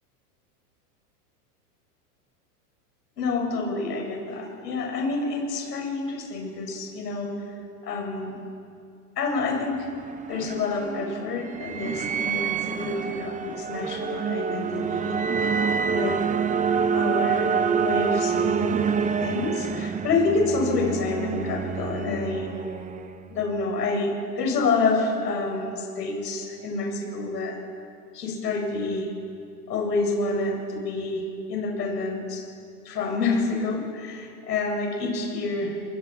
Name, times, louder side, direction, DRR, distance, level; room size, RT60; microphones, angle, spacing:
voice 1, 3.2-7.3 7.8-8.4 9.2-9.9 10.3-15.1 15.9-16.2 16.9-22.5 23.3-27.6 28.1-29.1 29.7-32.4 32.8-35.8, left 3 dB, 85° left, 0 dB, 7.8 m, -28 dB
sound 1, 9.7-23.5, right 6 dB, 15° right, 0.9 m, -27 dB
23.5 x 23.0 x 6.1 m, 2.4 s
hypercardioid pair, 115°, 47 cm